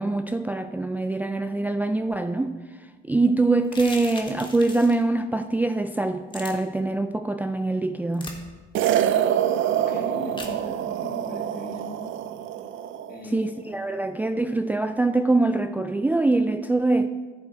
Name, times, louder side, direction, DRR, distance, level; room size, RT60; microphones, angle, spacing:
voice 1, 0.0-2.6 3.0-8.4 13.2-17.1, right 2 dB, 10° right, 8 dB, 0.3 m, -24 dB
sound 1, 3.6-5.0 6.3-6.5 8.1-8.4 10.4-10.5, left 2 dB, 25° left, 1.5 m, -38 dB
sound 2, 8.7-13.2, right 10 dB, 75° right, 0.6 m, -26 dB
voice 2, 9.6-12.1 13.1-13.6, left 2 dB, 50° left, 2 dB, 1.8 m, -39 dB
11.0 x 7.0 x 4.6 m, 1.4 s
cardioid pair, 90°, 20 cm